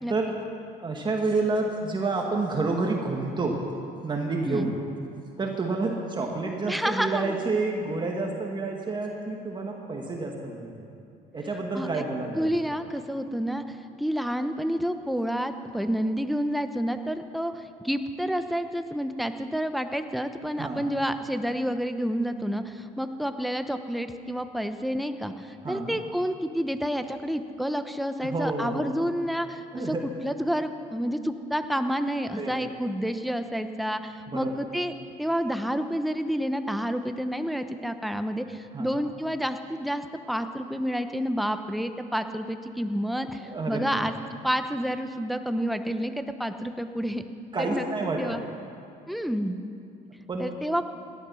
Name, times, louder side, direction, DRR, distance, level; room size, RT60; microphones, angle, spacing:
voice 1, 0.8-3.7 4.0-4.8 5.4-10.7 11.3-12.5 20.6-20.8 25.6-26.0 28.2-29.0 29.7-30.0 32.3-32.6 34.3-34.5 38.7-38.9 43.4-44.0 47.5-48.4 50.3-50.5, right 3 dB, 25° right, 0 dB, 1.8 m, -29 dB
voice 2, 6.7-7.4 11.7-11.9 12.3-34.9 35.2-44.1 44.4-47.2 47.6-47.8 48.2-48.4 49.1-49.6 50.4-50.8, equal, ahead, 8 dB, 0.9 m, -29 dB
18.0 x 12.5 x 6.3 m, 2.5 s
cardioid pair, 110°, 17 cm